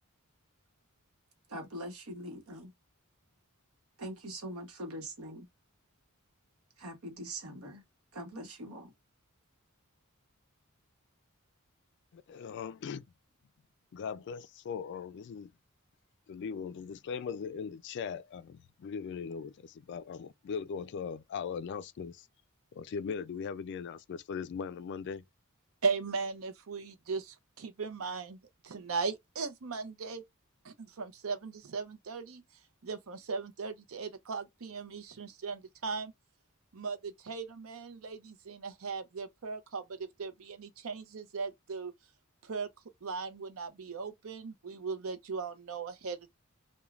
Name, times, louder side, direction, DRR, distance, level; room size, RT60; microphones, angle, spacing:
voice 1, 1.5-2.7 4.0-5.4 6.8-7.8 8.1-8.9, right 1 dB, 90° right, 1.0 m, -42 dB
voice 2, 12.3-13.0 13.9-15.5 16.3-22.3 22.7-25.2, left 6 dB, 55° left, 0.3 m, -39 dB
voice 3, 25.8-28.4 28.6-30.2 30.6-32.4 32.8-36.1 36.7-41.9 42.4-42.7 43.0-46.3, right 4 dB, 75° right, 0.6 m, -38 dB
3.1 x 2.2 x 2.4 m
head